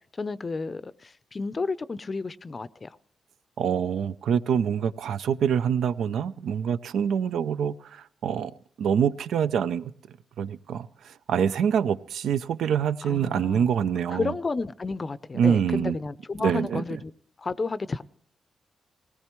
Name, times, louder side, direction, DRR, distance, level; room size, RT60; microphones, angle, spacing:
voice 1, 0.1-2.9 13.1-13.7 14.1-17.1 17.4-18.0, left 3 dB, 35° left, 0.5 m, -31 dB
voice 2, 3.6-8.5 8.8-9.9 10.4-14.3 15.3-16.0 16.4-17.0, right 8 dB, 85° right, 0.5 m, -25 dB
19.0 x 17.5 x 3.1 m
cardioid pair, 80°, 0 cm